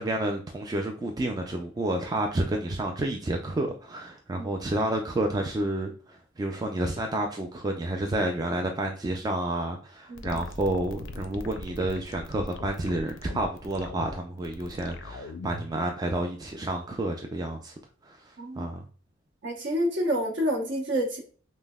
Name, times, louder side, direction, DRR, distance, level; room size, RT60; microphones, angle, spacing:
voice 1, 0.0-17.7 18.0-18.8, right 1 dB, 20° right, 0.3 m, -30 dB
voice 2, 10.1-10.4 18.4-18.7 19.4-21.2, equal, 60° right, 1.0 m, -28 dB
sound 1, 10.2-15.8, left 2 dB, 65° left, 0.4 m, -39 dB
5.2 x 2.0 x 2.2 m
head